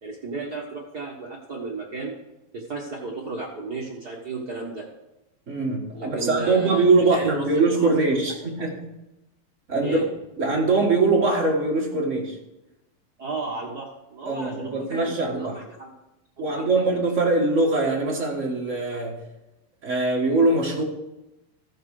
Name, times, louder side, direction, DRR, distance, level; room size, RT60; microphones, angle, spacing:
voice 1, 0.0-2.2 2.5-4.9 5.9-6.9 7.1-7.4 7.7-7.9 8.6-8.7 9.8-10.1 13.2-15.9 16.4-16.7, right 3 dB, 70° right, -2 dB, 0.9 m, -34 dB
voice 2, 5.5-8.8 9.7-10.0 10.4-12.4 14.2-15.6 16.4-19.2 19.8-20.8, right 3 dB, 35° right, -1 dB, 1.4 m, -22 dB
14.5 x 7.4 x 4.9 m, 0.95 s
omnidirectional pair, 3.9 m